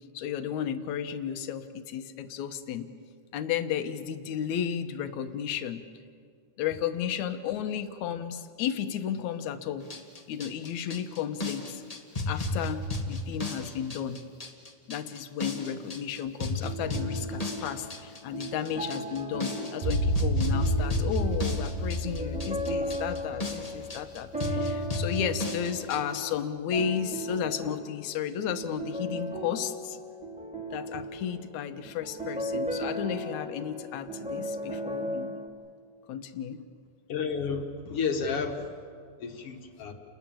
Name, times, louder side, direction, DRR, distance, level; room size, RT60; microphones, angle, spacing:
voice 1, 0.1-2.9 3.3-5.8 6.6-9.9 10.3-11.8 12.3-14.2 14.9-30.0 30.7-35.4 36.1-36.6, left 9 dB, 70° left, 9 dB, 2.2 m, -33 dB
sound 1, 9.8-26.2, left 2 dB, 85° left, 0.3 m, -34 dB
sound 2, 16.4-35.5, equal, ahead, 2.1 m, -37 dB
sound 3, 19.8-24.1, equal, 80° right, 4.8 m, -29 dB
voice 2, 37.1-38.7 39.2-39.9, left 5 dB, 50° left, 4 dB, 2.0 m, -31 dB
29.5 x 20.5 x 7.6 m, 2.1 s
omnidirectional pair, 4.0 m